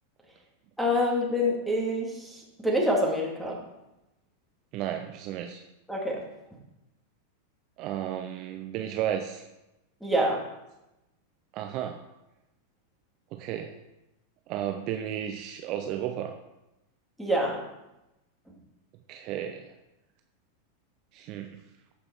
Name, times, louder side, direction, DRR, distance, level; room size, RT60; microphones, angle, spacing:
voice 1, 0.8-3.6 5.9-6.2 10.0-10.4 17.2-17.6, equal, ahead, -4 dB, 2.6 m, -26 dB
voice 2, 4.7-5.6 7.8-9.4 11.5-12.0 13.3-13.8 14.5-16.3 19.1-19.7 21.1-21.5, right 10 dB, 40° right, 4 dB, 0.7 m, -33 dB
14.0 x 5.4 x 4.4 m, 0.94 s
figure-of-eight pair, 90°, 0 cm